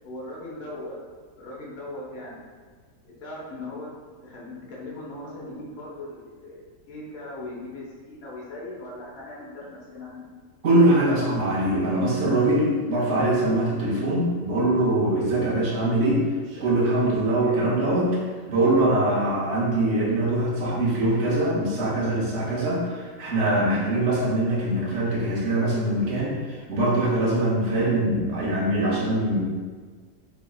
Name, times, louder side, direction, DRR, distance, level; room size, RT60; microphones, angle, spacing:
voice 1, 0.0-1.0 1.4-2.5 3.0-3.9 4.2-10.3 17.4-17.8, left 2 dB, 45° left, -5 dB, 0.9 m, -39 dB
voice 2, 10.6-18.1 18.5-29.4, right 1 dB, 55° right, -7 dB, 0.9 m, -23 dB
4.0 x 3.5 x 2.3 m, 1.5 s
omnidirectional pair, 1.9 m